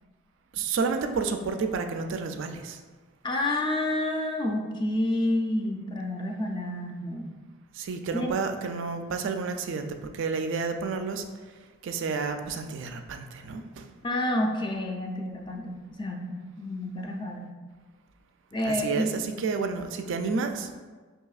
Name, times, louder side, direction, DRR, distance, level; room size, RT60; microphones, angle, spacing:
voice 1, 0.5-2.8 7.8-9.9 10.1-11.2 11.8-13.9 18.6-20.7, right 4 dB, 60° right, 6 dB, 0.3 m, -30 dB
voice 2, 3.2-7.3 8.1-8.4 14.0-17.5 18.5-19.1, left 1 dB, 20° left, 1 dB, 0.3 m, -29 dB
5.5 x 2.8 x 2.3 m, 1.4 s
head